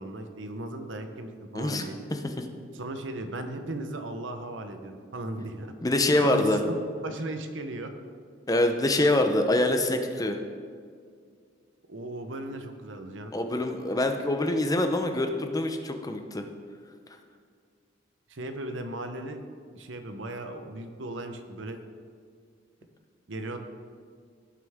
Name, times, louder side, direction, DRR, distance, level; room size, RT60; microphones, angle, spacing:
voice 1, 0.0-2.0 2.7-5.7 6.2-7.9 11.9-13.3 18.3-19.4 19.7-21.8 23.3-23.6, right 2 dB, 70° right, 7 dB, 0.9 m, -36 dB
voice 2, 1.5-2.4 5.8-6.6 8.5-10.4 13.3-16.5, left 1 dB, 20° left, 6 dB, 0.7 m, -25 dB
17.0 x 6.4 x 3.6 m, 2.1 s
head